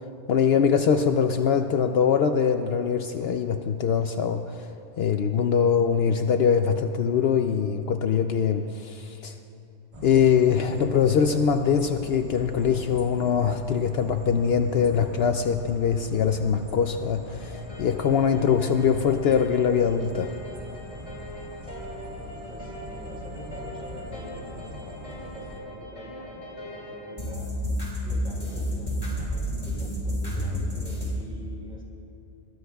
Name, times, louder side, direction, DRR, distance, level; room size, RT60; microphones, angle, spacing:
voice 1, 0.3-4.7 5.0-9.3 10.0-20.3, left 7 dB, 65° left, 7 dB, 0.8 m, -23 dB
sound 1, 9.9-25.6, equal, 30° right, 1.5 m, -41 dB
sound 2, 17.4-31.1, equal, 35° left, 4.4 m, -34 dB
voice 2, 22.2-27.5 28.0-31.8, equal, 5° right, -3 dB, 4.0 m, -45 dB
22.5 x 20.5 x 2.3 m, 2.6 s
omnidirectional pair, 1.2 m